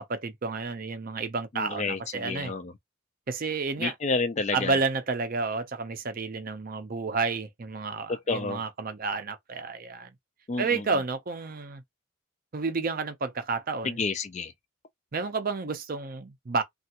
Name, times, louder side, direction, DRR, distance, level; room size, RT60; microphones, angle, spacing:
voice 1, 0.0-2.5 3.3-3.9 4.5-10.1 10.6-11.8 12.5-14.0 15.1-16.6, right 4 dB, 45° right, 0.5 m, -30 dB
voice 2, 1.5-2.7 3.8-4.8 8.1-8.6 10.5-10.8 13.8-14.5, left 4 dB, 35° left, 0.4 m, -30 dB
3.3 x 2.4 x 2.8 m
head